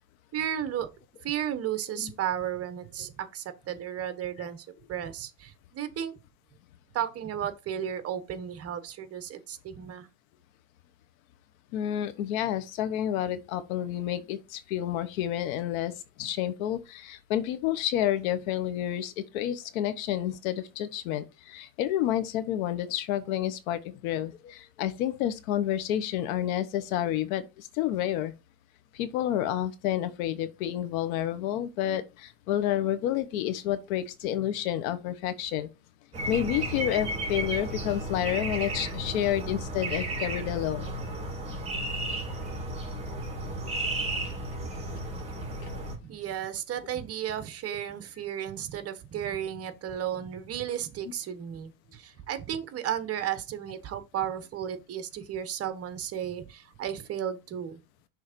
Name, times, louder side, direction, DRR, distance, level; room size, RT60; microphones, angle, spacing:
voice 1, 0.3-0.9 1.2-6.2 6.9-10.1 45.9-57.8, right 10 dB, 35° right, 1.1 m, -34 dB
voice 2, 11.7-28.3 28.9-35.7 36.3-40.9 47.7-47.8, left 11 dB, 80° left, 1.2 m, -30 dB
sound 1, 36.1-45.9, right 1 dB, 15° right, 2.9 m, -33 dB
6.3 x 3.5 x 5.1 m
supercardioid pair, 125°, 41 cm